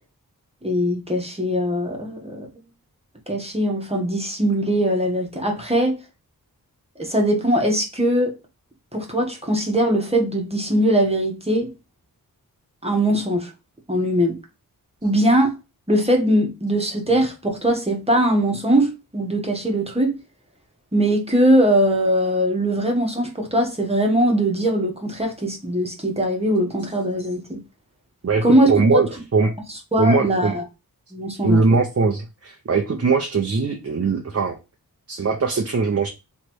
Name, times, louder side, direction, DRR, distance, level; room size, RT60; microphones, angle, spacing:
voice 1, 0.6-2.5 3.3-6.0 7.0-8.3 8.9-11.7 12.8-13.5 13.9-14.4 15.0-15.5 15.9-20.2 20.9-27.6 28.4-29.0 29.9-30.6 31.1-31.6, right 1 dB, 15° right, 1.3 m, -21 dB
voice 2, 28.2-29.5 30.0-30.5 31.4-34.6 35.1-36.1, right 4 dB, 40° right, 0.7 m, -20 dB
3.3 x 3.1 x 4.5 m
wide cardioid pair, 80°, 37 cm